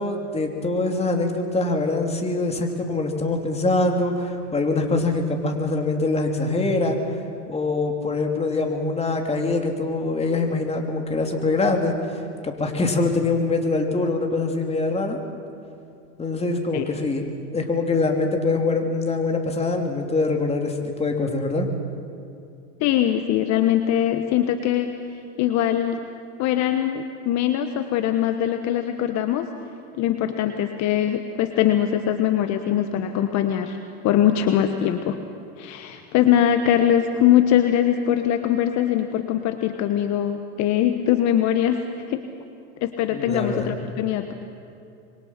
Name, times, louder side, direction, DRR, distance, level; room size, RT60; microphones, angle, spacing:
voice 1, 0.0-7.0 7.5-11.9 12.4-15.2 16.2-17.2 17.5-21.7 43.1-43.8, left 3 dB, 15° left, 3 dB, 3.3 m, -24 dB
voice 2, 22.8-24.9 25.4-26.0 26.4-29.5 29.9-33.8 34.0-35.2 35.6-41.8 42.1-42.2 42.8-44.3, left 10 dB, 45° left, 8 dB, 1.3 m, -22 dB
26.0 x 23.0 x 6.0 m, 2.6 s
hypercardioid pair, 105°, 38 cm